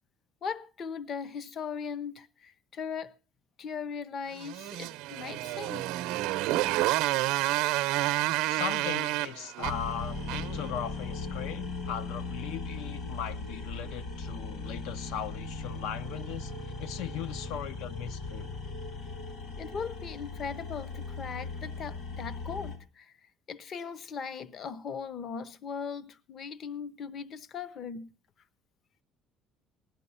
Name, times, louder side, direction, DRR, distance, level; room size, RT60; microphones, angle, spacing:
voice 1, 0.4-3.1 3.6-5.9 19.6-23.1 23.5-28.1, left 6 dB, 35° left, 0.7 m, -39 dB
Motorcycle, 4.4-10.7, right 18 dB, 85° right, 0.6 m, -29 dB
voice 2, 8.5-16.5 16.8-18.5, left 9 dB, 80° left, 0.7 m, -38 dB
sound 1, 9.6-22.8, left 3 dB, 55° left, 3.0 m, -38 dB
17.0 x 10.5 x 5.6 m
cardioid pair, 165°, 0 cm